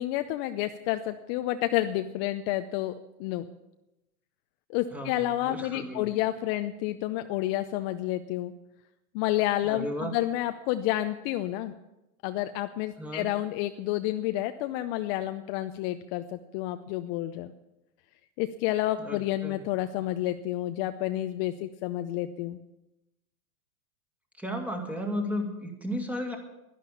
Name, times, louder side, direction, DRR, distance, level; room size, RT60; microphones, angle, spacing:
voice 1, 0.0-2.9 3.2-3.5 4.7-8.5 9.1-11.7 12.2-17.5 18.4-22.6, left 14 dB, 40° left, 9 dB, 0.7 m, -30 dB
voice 2, 4.9-6.1 9.6-10.1 13.0-13.3 19.0-19.6 24.4-26.4, equal, 5° right, 2 dB, 2.2 m, -34 dB
12.0 x 11.5 x 8.4 m, 0.94 s
hypercardioid pair, 130°, 44 cm